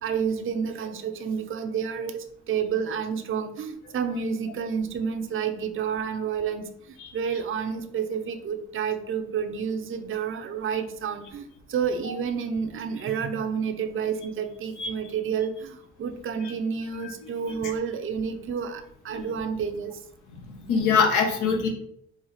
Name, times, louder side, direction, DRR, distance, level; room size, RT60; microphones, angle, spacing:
voice 1, 0.0-19.9, right 6 dB, 45° right, 6 dB, 0.6 m, -30 dB
voice 2, 20.5-21.7, left 5 dB, 90° left, 2 dB, 1.0 m, -24 dB
4.3 x 2.4 x 3.9 m, 0.70 s
cardioid pair, 90°, 30 cm